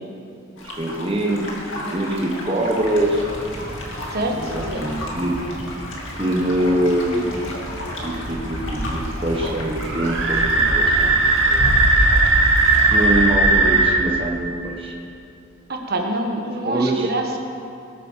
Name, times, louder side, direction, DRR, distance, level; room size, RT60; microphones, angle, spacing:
sound 1, 0.6-13.3, left 1 dB, 70° left, 2.5 m, -34 dB
voice 1, 0.8-3.3 4.4-5.3 6.2-7.4 8.0-11.2 12.9-14.9 16.6-17.1, right 1 dB, 25° right, -1 dB, 1.3 m, -23 dB
sound 2, 2.8-14.0, right 2 dB, 70° right, 1.8 m, -21 dB
voice 2, 4.1-4.8 15.7-17.4, right 1 dB, 50° right, 2 dB, 1.4 m, -26 dB
20.5 x 9.4 x 5.8 m, 2.7 s
head